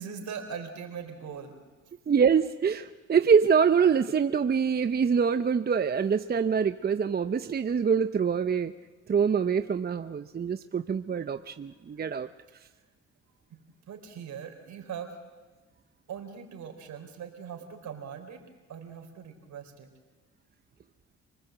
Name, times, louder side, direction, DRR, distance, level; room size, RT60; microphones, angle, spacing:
voice 1, 0.0-1.5 13.5-13.6 13.9-15.2 16.1-18.4 18.7-19.9, right 7 dB, 70° right, 5 dB, 4.2 m, -40 dB
voice 2, 2.1-8.7 9.1-12.3, right 6 dB, 30° right, 10 dB, 0.7 m, -25 dB
26.5 x 19.5 x 7.9 m, 1.3 s
cardioid pair, 90°, 30 cm